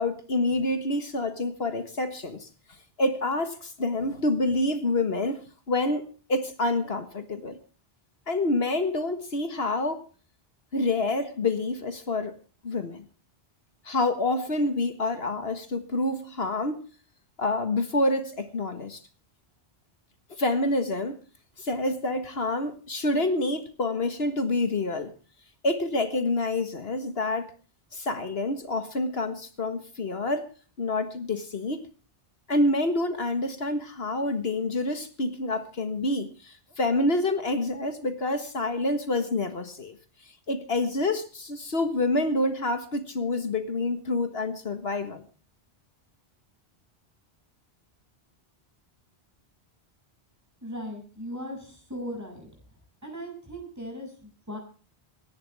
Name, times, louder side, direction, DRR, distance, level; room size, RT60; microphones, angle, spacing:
voice 1, 0.0-2.5 3.0-6.0 6.3-7.6 8.3-10.0 10.7-12.4 12.6-13.1 13.9-16.8 17.4-19.0 20.3-21.2 21.6-25.1 25.6-27.5 27.9-30.5 30.8-31.9 32.5-40.0 40.5-45.2, left 2 dB, 70° left, 1.8 m, -27 dB
voice 2, 50.6-52.5 53.0-54.6, equal, 15° right, 7.0 m, -38 dB
25.5 x 11.5 x 3.5 m
omnidirectional pair, 1.1 m